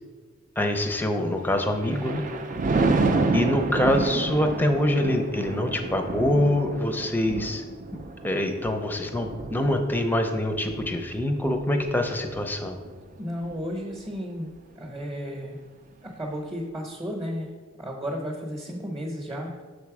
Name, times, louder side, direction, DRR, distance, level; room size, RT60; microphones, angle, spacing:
voice 1, 0.6-2.2 3.3-7.6 8.2-12.8, left 1 dB, 10° left, 5 dB, 0.5 m, -25 dB
Thunder, 1.5-13.0 13.4-13.8, right 3 dB, 40° right, 0.4 m, -29 dB
voice 2, 3.0-3.3 13.2-14.5 14.8-15.6 16.0-17.5 17.8-19.6, equal, 20° right, 0 dB, 0.9 m, -33 dB
6.5 x 4.2 x 4.8 m, 1.5 s
head